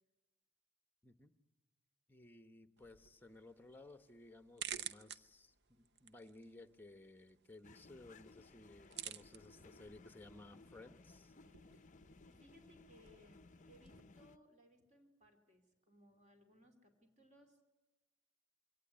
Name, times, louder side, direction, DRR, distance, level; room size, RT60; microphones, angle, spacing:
voice 1, 1.0-1.4 2.1-11.3, left 2 dB, 10° left, 10 dB, 1.1 m, -58 dB
sound 1, 2.8-14.0, right 9 dB, 50° right, 0.7 m, -53 dB
sound 2, 7.6-14.4, left 3 dB, 35° left, 0.7 m, -61 dB
voice 2, 12.3-17.6, equal, 35° right, 5 dB, 2.8 m, -66 dB
23.5 x 17.5 x 9.5 m, 1.1 s
head